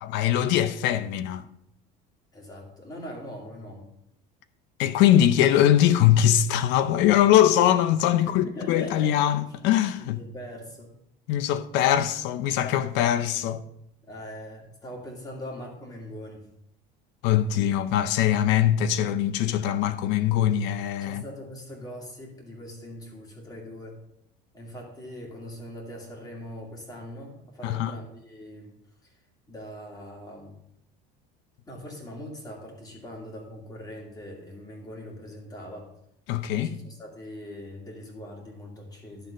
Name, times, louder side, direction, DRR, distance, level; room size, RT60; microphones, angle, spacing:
voice 1, 0.0-1.5 4.8-10.2 11.3-13.6 17.2-21.2 27.6-27.9 36.3-36.8, left 11 dB, 70° left, 0.6 m, -22 dB
voice 2, 2.3-3.9 8.1-9.1 10.0-10.9 14.0-16.5 21.0-24.0 24.5-28.7 29.0-29.1 29.5-30.6 31.7-35.9 36.6-39.3, equal, 20° left, 2.4 m, -41 dB
11.5 x 3.9 x 5.2 m
cardioid pair, 130°, 19 cm